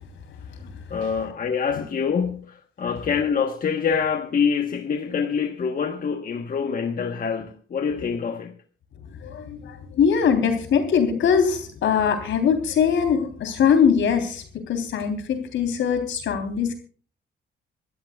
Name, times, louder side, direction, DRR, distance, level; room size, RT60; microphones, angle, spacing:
voice 1, 0.9-8.5, left 6 dB, 45° left, 1.2 m, -25 dB
voice 2, 9.2-16.7, left 7 dB, 70° left, 3.4 m, -22 dB
26.0 x 13.0 x 2.3 m
cardioid pair, 90°, 20 cm